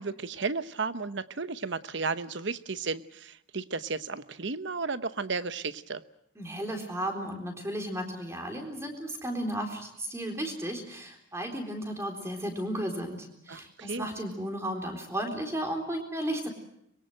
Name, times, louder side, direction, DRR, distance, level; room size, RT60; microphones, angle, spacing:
voice 1, 0.0-6.0 13.5-14.1, right 4 dB, 60° right, 13 dB, 1.0 m, -33 dB
voice 2, 6.4-16.5, right 1 dB, 15° right, 3 dB, 3.9 m, -34 dB
25.0 x 22.5 x 7.8 m, 0.76 s
head